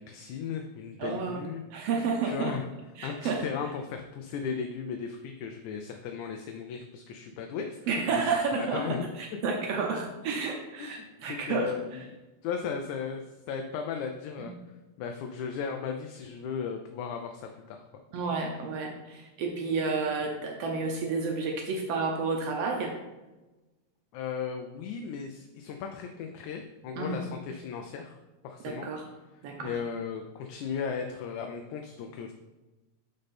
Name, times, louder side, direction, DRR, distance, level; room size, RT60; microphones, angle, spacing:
voice 1, 0.0-1.6 2.2-2.7 3.0-7.8 8.1-8.2 8.5-9.1 9.5-9.6 10.8-11.0 11.3-12.1 12.4-14.5 15.0-17.9 24.1-28.2 28.4-28.9 29.6-32.3, left 6 dB, 85° left, 4 dB, 2.0 m, -36 dB
voice 2, 1.0-1.4 1.7-2.5 3.0-3.4 7.9-11.7 14.4-14.5 18.1-22.9 27.0-27.3 28.6-29.0 29.4-29.7, right 4 dB, 70° right, 1 dB, 1.6 m, -31 dB
6.6 x 5.4 x 4.2 m, 1.1 s
omnidirectional pair, 3.4 m